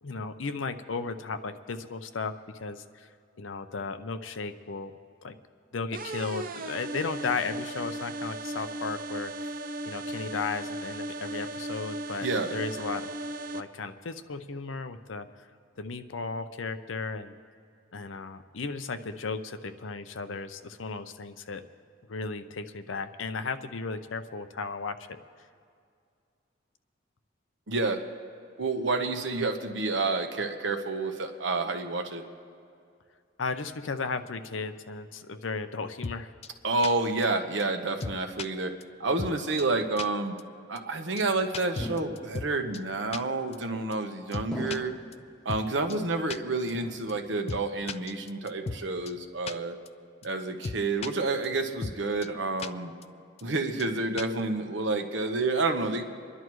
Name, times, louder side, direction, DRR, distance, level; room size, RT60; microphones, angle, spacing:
voice 1, 0.0-2.3 2.6-3.1 3.4-4.9 5.2-5.3 5.7-9.5 9.9-13.1 13.5-15.3 15.8-17.4 17.9-21.6 22.1-25.2 33.4-36.3, left 4 dB, 80° left, 9 dB, 0.7 m, -35 dB
sound 1, 5.9-13.6, right 2 dB, 45° right, 0.5 m, -36 dB
voice 2, 12.2-12.6 27.7-28.0 28.6-32.2 36.6-38.7 39.0-40.3 40.7-44.9 45.4-49.8 50.2-52.9 53.4-56.0, right 3 dB, 70° right, 6 dB, 1.0 m, -29 dB
sound 2, 36.0-36.2 36.4-36.5 36.8-36.9 37.2-37.3 37.6-37.7 38.0-38.5 38.8-38.9 39.2-39.3 39.6-39.7 40.0-40.1 40.4-40.5 40.8-40.9 41.2-41.3 41.5-42.5 42.7-42.8 43.1-43.2 43.5-43.6 43.9-44.0 44.3-44.8 45.1-45.2 45.5-45.6 45.9-46.0 46.3-46.4 46.7-46.8 47.1-47.2 47.5-47.6 47.9-48.8 49.1-49.2 49.5-49.6 49.9-50.0 50.2-50.3 50.6-51.1 51.4-51.5 51.8-52.0 52.2-52.3 52.6-52.7 53.0-53.1 53.4-53.5 53.8-53.9 54.2-54.4, left 4 dB, 35° left, 0.3 m, -35 dB
sound 3, 41.8-42.6 43.5-44.0 44.5-45.3 45.8-46.4 46.7-47.5 47.8-48.2 48.7-49.3, left 1 dB, 5° left, 1.1 m, -41 dB
27.0 x 11.0 x 3.1 m, 2.3 s
head